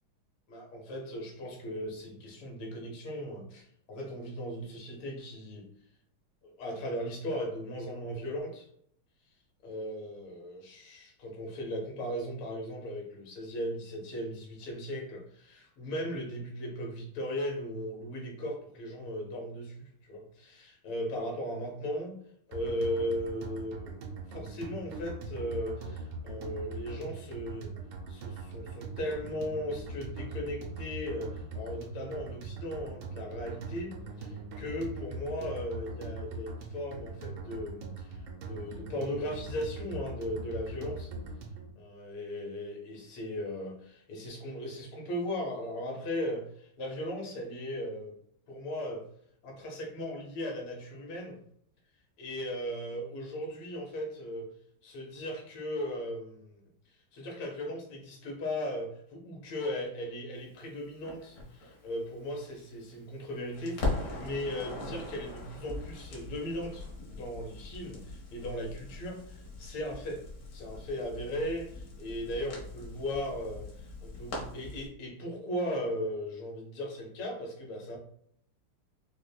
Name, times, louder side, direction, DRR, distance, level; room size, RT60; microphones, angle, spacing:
voice 1, 0.5-5.7 6.4-8.7 9.6-22.2 22.5-27.7 28.1-41.0 41.8-48.2 48.5-49.1 49.4-51.4 52.2-54.5 54.8-56.6 57.1-70.2 70.5-78.0, equal, 85° left, 0 dB, 1.8 m, -37 dB
sound 1, 22.5-41.7, right 2 dB, 80° right, 1.5 m, -41 dB
Crackle, 61.1-63.2 63.5-74.9, left 2 dB, 60° left, 1.4 m, -40 dB
5.0 x 2.1 x 2.2 m, 0.67 s
omnidirectional pair, 2.3 m